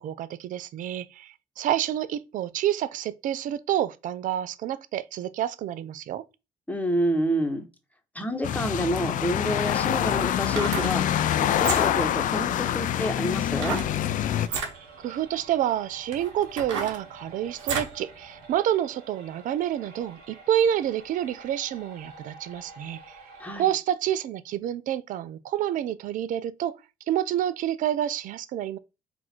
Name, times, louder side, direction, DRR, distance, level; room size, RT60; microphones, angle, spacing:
voice 1, 0.0-6.2 15.0-23.2 23.6-26.8 27.1-28.8, right 11 dB, 55° right, 0.4 m, -28 dB
voice 2, 6.7-7.6 8.1-11.0 11.4-13.8 23.4-23.7, equal, 10° left, 1.1 m, -28 dB
sound 1, 8.4-14.5, left 11 dB, 55° left, 0.4 m, -25 dB
sound 2, 9.8-23.8, right 3 dB, 70° right, 1.4 m, -49 dB
sound 3, 10.4-11.0 11.5-12.1 13.6-13.9 14.4-14.7 15.5-15.6 16.1-18.0 18.4-18.5, right 5 dB, 90° right, 0.8 m, -32 dB
3.8 x 2.5 x 4.4 m
hypercardioid pair, 55°, 16 cm